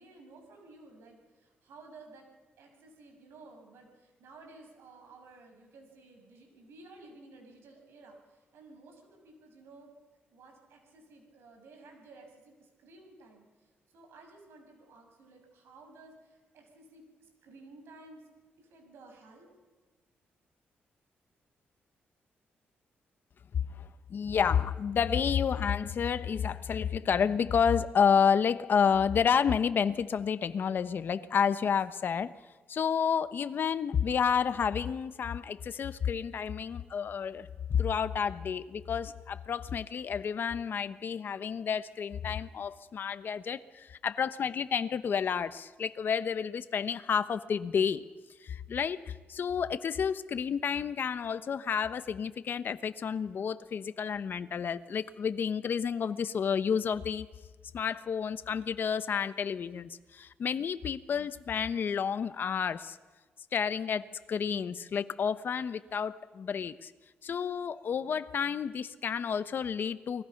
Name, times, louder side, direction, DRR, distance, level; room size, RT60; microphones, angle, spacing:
voice 1, 0.0-2.3 2.6-9.9 10.3-18.3 18.6-19.5, right 3 dB, 85° right, 3 dB, 6.8 m, -54 dB
voice 2, 23.8-32.3 32.7-48.1 48.4-57.3 57.7-63.0 63.5-66.9 67.2-70.2, left 7 dB, 55° left, 12 dB, 1.0 m, -30 dB
29.0 x 21.0 x 6.0 m, 1.3 s
cardioid pair, 100°, 4 cm